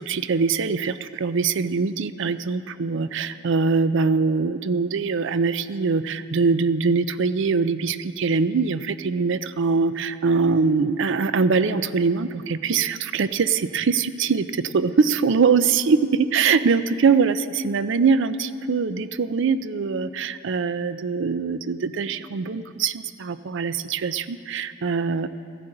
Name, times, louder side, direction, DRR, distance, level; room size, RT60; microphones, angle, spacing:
voice 1, 0.0-25.3, right 5 dB, 65° right, 13 dB, 0.5 m, -23 dB
15.5 x 13.5 x 3.9 m, 2.4 s
head